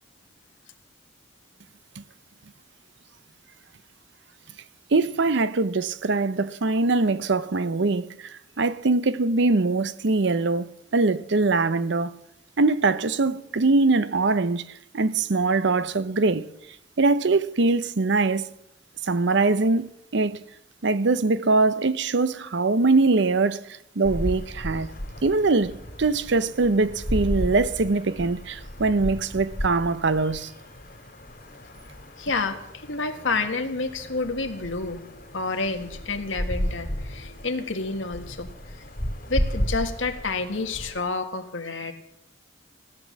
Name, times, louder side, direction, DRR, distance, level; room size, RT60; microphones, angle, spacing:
voice 1, 4.9-12.2 12.6-16.5 17.0-18.5 19.0-20.4 20.8-24.9 25.2-30.5, right 3 dB, 65° right, 0.7 m, -22 dB
sound 1, 24.0-41.0, equal, 50° left, 3.0 m, -34 dB
voice 2, 32.2-35.0 35.3-38.5 39.3-41.9, left 3 dB, 80° left, 1.7 m, -29 dB
15.5 x 10.0 x 7.4 m
head